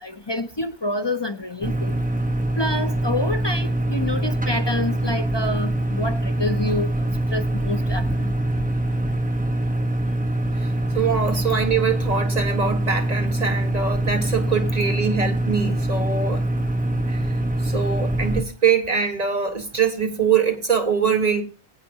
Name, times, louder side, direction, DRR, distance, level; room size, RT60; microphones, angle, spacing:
voice 1, 0.0-1.9 2.6-6.9 7.3-8.3, left 1 dB, 30° left, 0.6 m, -27 dB
sound 1, 1.6-18.4, right 1 dB, 5° right, 1.1 m, -24 dB
voice 2, 10.6-16.4 17.1-21.4, right 6 dB, 35° right, 1.4 m, -23 dB
22.0 x 8.3 x 2.8 m
omnidirectional pair, 1.2 m